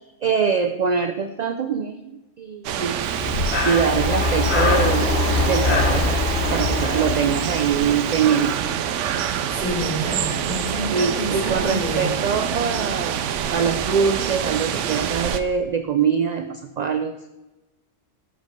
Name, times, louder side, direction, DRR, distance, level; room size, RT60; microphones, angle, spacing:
voice 1, 0.2-2.1 2.4-3.0 3.6-5.1 5.4-6.2 6.5-8.6 10.9-13.2 13.5-17.1, right 6 dB, 60° right, 7 dB, 0.4 m, -23 dB
sound 1, 2.6-15.4, right 9 dB, 90° right, 0.9 m, -26 dB
Breathing, 3.1-8.1, left 3 dB, 65° left, 1.3 m, -22 dB
voice 2, 9.5-12.1, equal, 40° left, -6 dB, 3.4 m, -28 dB
7.2 x 5.1 x 5.3 m, 1.0 s
omnidirectional pair, 1.2 m